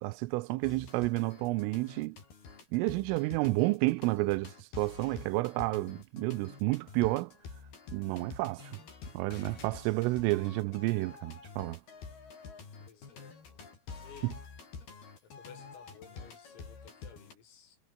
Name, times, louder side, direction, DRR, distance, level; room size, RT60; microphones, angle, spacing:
voice 1, 0.0-2.2 2.7-7.3 7.9-8.8 9.1-11.8 14.2-14.3, right 22 dB, 85° right, 3.2 m, -30 dB
sound 1, 0.6-17.3, left 5 dB, 50° left, 7.9 m, -48 dB
voice 2, 12.9-14.4 15.2-17.8, left 7 dB, 90° left, 7.3 m, -56 dB
omnidirectional pair, 5.9 m